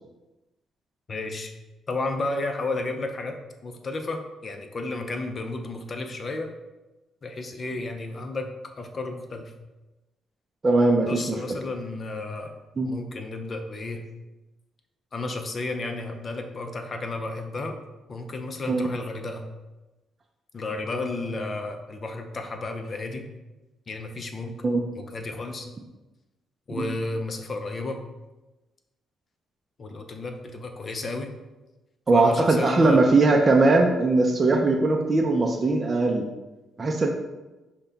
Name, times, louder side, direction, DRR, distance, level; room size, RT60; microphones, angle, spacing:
voice 1, 1.1-1.5 1.9-6.5 7.2-8.5 8.8-9.5 11.0-12.5 12.9-14.0 15.1-17.8 18.1-19.4 20.5-23.3 23.9-24.6 24.9-25.7 26.7-28.0 29.8-31.3 32.1-33.0, left 2 dB, 40° left, 5 dB, 0.6 m, -32 dB
voice 2, 10.6-11.2 12.8-12.9 18.7-18.9 24.6-24.8 26.8-26.9 32.1-36.2 36.8-37.1, right 3 dB, 30° right, 1 dB, 0.5 m, -20 dB
5.6 x 2.2 x 4.0 m, 1.1 s
cardioid pair, 90°, 0 cm